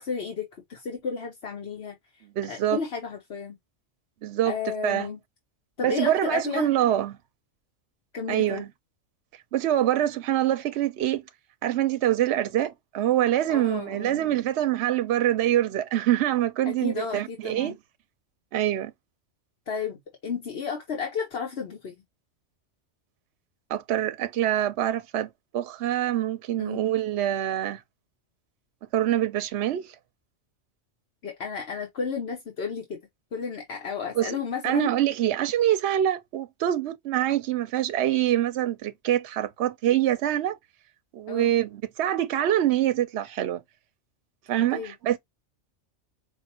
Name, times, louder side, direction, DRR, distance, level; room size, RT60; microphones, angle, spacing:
voice 1, 0.0-3.6 4.4-5.2 5.8-6.7 8.1-8.6 13.5-14.2 16.6-17.7 19.7-22.0 26.6-26.8 31.2-33.0 33.3-34.9 41.3-41.5 44.7-44.9, left 6 dB, 60° left, 1.3 m, -33 dB
voice 2, 2.4-2.8 4.2-4.5 4.8-5.1 5.8-7.2 8.3-8.7 9.5-11.2 11.6-17.7 18.5-18.9 23.7-27.8 28.9-29.9 34.2-34.4 34.6-40.6 41.1-43.6 44.5-45.2, right 12 dB, 70° right, 0.8 m, -25 dB
5.3 x 2.4 x 2.8 m
omnidirectional pair, 1.2 m